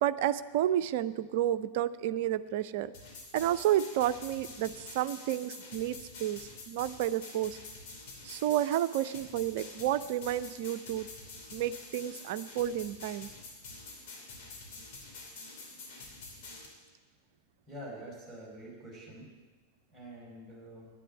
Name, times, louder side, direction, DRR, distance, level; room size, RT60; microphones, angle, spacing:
voice 1, 0.0-2.9 3.3-7.6 8.2-11.1 11.5-13.3, right 12 dB, 50° right, 14 dB, 0.5 m, -31 dB
sound 1, 2.9-16.6, left 3 dB, 45° left, 3.0 m, -47 dB
voice 2, 17.7-19.3 19.9-20.9, right 1 dB, ahead, -5 dB, 5.4 m, -46 dB
10.0 x 10.0 x 8.1 m, 1.3 s
figure-of-eight pair, 90°, 0 cm